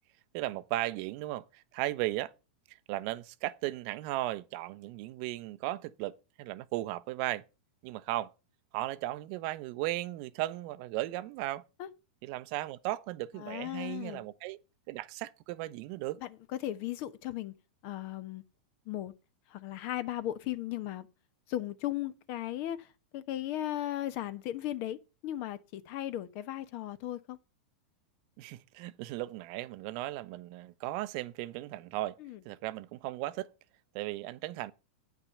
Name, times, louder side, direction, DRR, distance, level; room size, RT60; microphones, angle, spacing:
voice 1, 0.3-2.3 2.7-7.4 7.8-8.3 8.7-11.6 12.2-14.6 14.9-16.2 28.4-32.2 32.4-33.5 33.9-34.7, right 16 dB, 50° right, 0.7 m, -36 dB
voice 2, 13.4-14.2 16.2-16.3 16.6-17.5 17.8-18.4 18.9-19.1 19.5-21.1 21.5-22.9 23.1-27.4 32.2-32.4, left 13 dB, 50° left, 1.0 m, -36 dB
9.4 x 5.9 x 6.7 m
hypercardioid pair, 110°, 5 cm